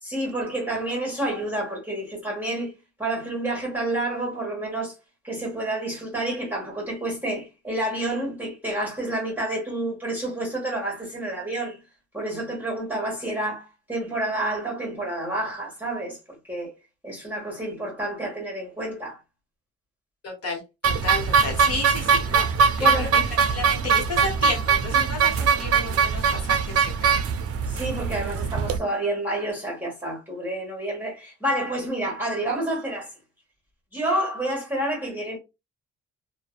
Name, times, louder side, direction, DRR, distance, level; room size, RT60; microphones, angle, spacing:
voice 1, 0.0-2.7 3.0-4.9 5.2-11.8 12.1-16.7 17.0-19.2 22.8-23.2 27.7-33.1 33.9-35.4, right 1 dB, 5° right, 1.2 m, -29 dB
voice 2, 20.2-27.2, left 3 dB, 55° left, 1.0 m, -33 dB
sound 1, 20.8-28.8, right 6 dB, 50° right, 0.5 m, -22 dB
2.6 x 2.2 x 2.4 m
cardioid pair, 90°, 30 cm